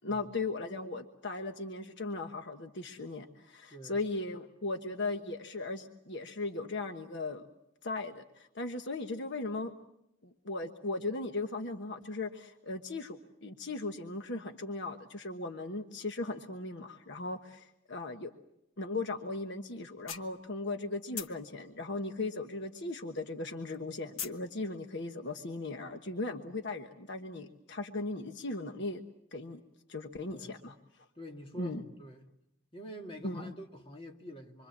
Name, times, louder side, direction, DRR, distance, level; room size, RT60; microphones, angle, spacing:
voice 1, 0.0-7.4 7.8-9.7 10.2-18.3 18.8-29.0 29.3-29.6 29.9-30.7 31.6-31.8 33.2-33.5, left 2 dB, 60° left, 1.3 m, -37 dB
voice 2, 3.7-4.0 30.2-30.6 31.2-32.3 32.7-34.7, equal, 25° left, 2.4 m, -47 dB
sound 1, 19.3-19.4 19.8-20.8 21.1-23.0 23.3-24.5, left 8 dB, 80° left, 1.5 m, -42 dB
26.5 x 25.0 x 7.4 m
head